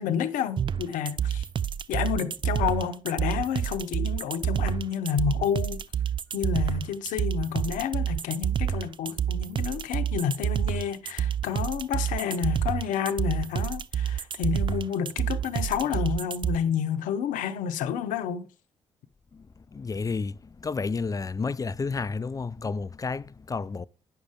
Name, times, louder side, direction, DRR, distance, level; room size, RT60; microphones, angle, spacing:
voice 1, 0.0-1.5 1.9-5.8 6.3-18.5, left 8 dB, 75° left, 0.7 m, -29 dB
sound 1, 0.6-16.6, right 9 dB, 40° right, 0.4 m, -28 dB
voice 2, 19.7-23.9, left 4 dB, 25° left, 0.4 m, -31 dB
9.0 x 6.5 x 3.5 m
hypercardioid pair, 45°, 13 cm